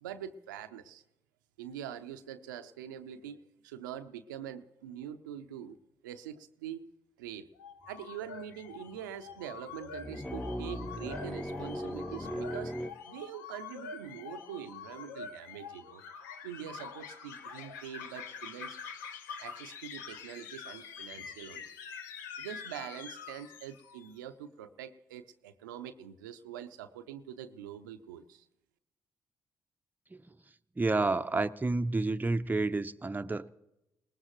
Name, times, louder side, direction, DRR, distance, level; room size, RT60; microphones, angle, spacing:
voice 1, 0.0-1.0 1.6-5.8 6.0-6.9 7.2-7.5 7.9-12.7 13.1-16.0 16.4-18.8 19.4-21.7 22.4-28.5, right 9 dB, 90° right, 0.6 m, -44 dB
sound 1, 7.6-24.1, left 6 dB, 85° left, 0.7 m, -46 dB
sound 2, 7.9-8.0 8.3-9.0 9.7-12.9, equal, 5° left, 0.9 m, -38 dB
voice 2, 30.8-33.5, right 3 dB, 20° right, 0.7 m, -30 dB
21.0 x 18.5 x 3.0 m
hypercardioid pair, 45°, 10 cm